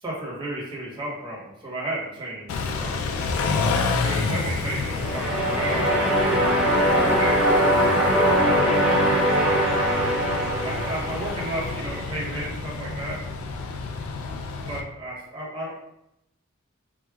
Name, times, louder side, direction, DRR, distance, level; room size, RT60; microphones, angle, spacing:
voice 1, 0.0-3.1 4.0-6.0 7.0-9.7 10.6-13.2 14.6-15.7, right 1 dB, 25° right, -6 dB, 1.1 m, -33 dB
Car / Idling / Accelerating revving vroom, 2.5-14.8, left 4 dB, 80° left, 0.4 m, -29 dB
sound 1, 4.9-11.9, equal, 5° right, 0.8 m, -22 dB
4.7 x 2.2 x 2.3 m, 0.81 s
head